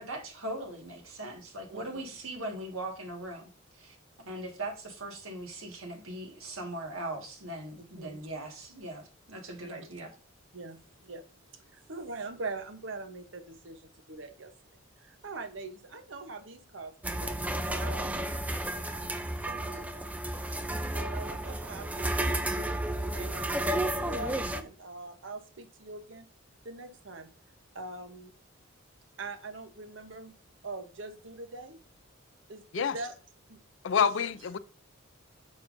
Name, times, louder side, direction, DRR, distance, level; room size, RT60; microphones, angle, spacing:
voice 1, 0.0-10.1, right 1 dB, 90° right, 1.7 m, -40 dB
voice 2, 7.8-8.2 9.6-9.7 10.5-11.2 11.5-14.5 15.0-17.3 17.8-18.2 19.5-19.9 20.9-22.7 23.1-26.3 26.6-27.3 27.7-28.3 29.2-30.3 30.6-31.8 32.5-33.2 33.5-33.6 33.9-34.3, right 3 dB, 65° right, 0.9 m, -42 dB
sound 1, 17.0-24.6, right 1 dB, 5° right, 0.3 m, -32 dB
voice 3, 33.8-34.6, left 7 dB, 65° left, 0.4 m, -27 dB
8.7 x 5.7 x 2.6 m
head